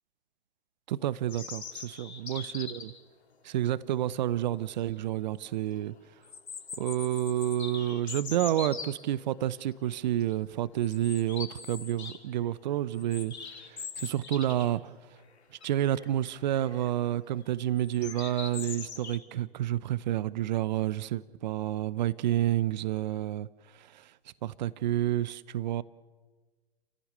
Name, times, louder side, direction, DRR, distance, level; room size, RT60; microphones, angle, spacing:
voice 1, 0.9-2.9 3.4-5.9 6.8-13.3 13.7-14.9 15.6-23.5 23.7-24.1 24.4-25.8, right 12 dB, 45° right, 18 dB, 0.7 m, -29 dB
sound 1, 1.3-3.0 4.5-4.6 5.0-5.1 6.2-8.9 9.6-9.9 10.2-10.3 10.8-12.2 12.5-14.8 15.1-15.2 15.6-16.1 16.5-16.9 17.8-19.2, left 5 dB, 75° left, 2.6 m, -41 dB
29.5 x 15.0 x 6.7 m, 1.4 s
hypercardioid pair, 130°, 33 cm